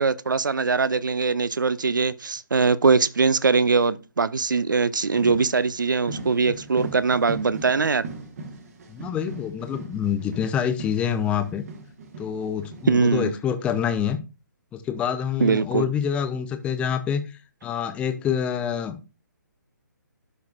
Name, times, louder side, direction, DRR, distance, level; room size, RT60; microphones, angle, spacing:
voice 1, 0.0-8.0 12.9-13.3 15.4-15.9, right 4 dB, 75° right, 0.5 m, -22 dB
sound 1, 5.1-13.0, right 3 dB, 50° right, 1.5 m, -39 dB
voice 2, 8.9-11.7 12.2-14.2 14.7-19.1, left 8 dB, 10° left, 0.6 m, -26 dB
12.0 x 4.6 x 2.4 m
figure-of-eight pair, 135°, 11 cm